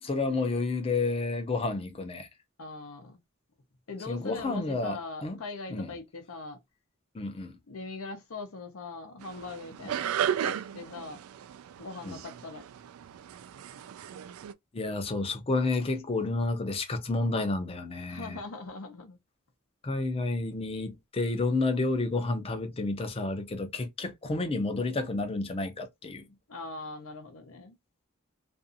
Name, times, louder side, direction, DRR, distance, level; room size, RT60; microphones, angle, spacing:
voice 1, 0.0-2.3 4.1-5.4 5.7-5.9 7.1-7.6 12.0-12.2 14.7-18.4 19.8-26.2, left 3 dB, 30° left, 0.5 m, -30 dB
voice 2, 2.6-3.2 3.9-6.6 7.7-10.1 10.4-11.2 11.8-12.6 18.1-19.2 26.5-27.8, left 3 dB, 80° left, 0.7 m, -41 dB
sound 1, 9.2-14.5, right 9 dB, 85° right, 0.3 m, -35 dB
2.6 x 2.5 x 2.5 m
head